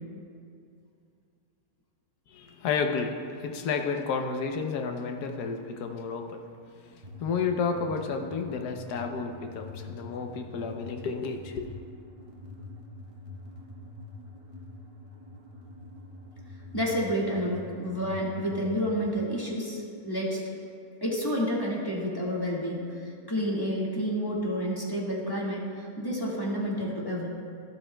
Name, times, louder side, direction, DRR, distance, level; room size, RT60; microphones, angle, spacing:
voice 1, 2.3-6.4 6.8-11.7, left 5 dB, 80° left, 4 dB, 1.2 m, -31 dB
sound 1, 7.0-19.1, left 2 dB, 30° right, 0.7 m, -45 dB
voice 2, 16.7-20.4 21.0-27.3, equal, 15° left, -5 dB, 1.6 m, -30 dB
12.5 x 11.5 x 2.2 m, 2.3 s
omnidirectional pair, 1.7 m